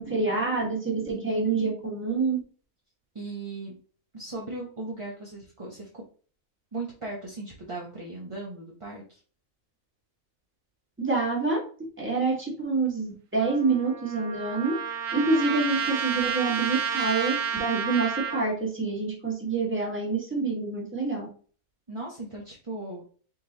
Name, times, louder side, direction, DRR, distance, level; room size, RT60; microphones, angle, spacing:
voice 1, 0.0-2.4 11.0-11.6 12.0-14.8 15.1-21.3, right 3 dB, 10° right, -3 dB, 1.5 m, -27 dB
voice 2, 3.1-3.7 4.1-6.0 6.7-9.2 21.9-23.0, right 2 dB, 30° right, -3 dB, 0.7 m, -37 dB
Trumpet, 13.4-18.5, right 7 dB, 70° right, 1.0 m, -30 dB
3.8 x 3.0 x 3.9 m, 0.41 s
omnidirectional pair, 1.6 m